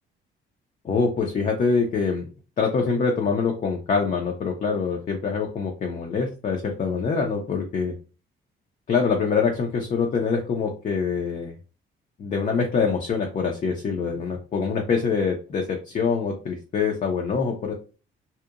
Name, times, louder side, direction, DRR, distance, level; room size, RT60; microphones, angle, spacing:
voice 1, 0.8-2.3 2.6-7.9 8.9-11.5 12.2-17.7, left 5 dB, 35° left, 1 dB, 0.5 m, -25 dB
2.8 x 2.1 x 2.4 m, 0.34 s
cardioid pair, 120°, 21 cm